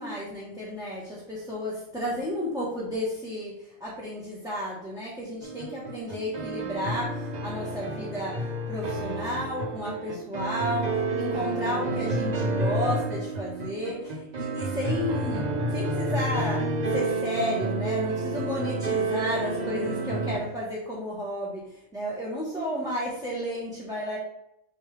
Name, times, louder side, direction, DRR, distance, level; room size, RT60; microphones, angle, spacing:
voice 1, 0.0-15.4 15.7-24.2, equal, 5° right, -6 dB, 1.2 m, -32 dB
sound 1, 5.4-20.4, right 2 dB, 40° right, 0.8 m, -30 dB
6.5 x 4.9 x 3.4 m, 0.80 s
omnidirectional pair, 1.3 m